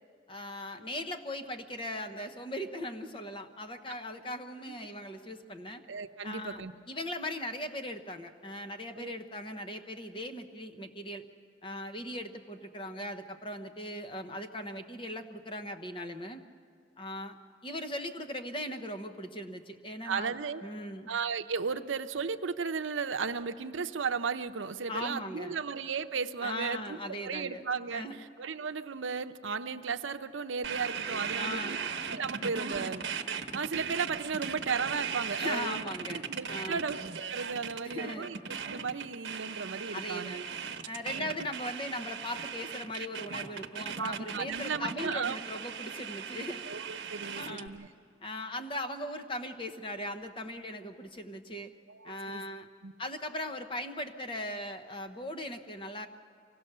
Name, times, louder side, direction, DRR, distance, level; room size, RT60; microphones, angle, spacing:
voice 1, 0.3-5.8 6.2-11.2 11.6-16.4 17.0-17.4 17.6-20.4 20.6-21.1 24.9-25.6 26.4-27.6 27.9-28.2 31.4-31.8 35.4-36.8 37.8-38.3 39.9-40.5 40.8-46.6 47.4-47.7 48.2-51.7 52.0-52.7 53.0-56.1, left 1 dB, 25° left, 7 dB, 0.9 m, -39 dB
voice 2, 5.9-6.7 9.0-9.2 20.0-20.6 21.1-27.0 27.2-31.8 32.1-33.0 33.5-35.8 36.1-37.0 37.3-38.4 38.7-40.4 41.2-41.3 44.0-45.4 46.7-47.9 51.9-52.4 52.8-52.9, right 5 dB, 85° right, 9 dB, 0.7 m, -35 dB
sound 1, 30.6-47.7, right 6 dB, 65° right, 1.1 m, -38 dB
25.0 x 17.5 x 6.7 m, 2.5 s
head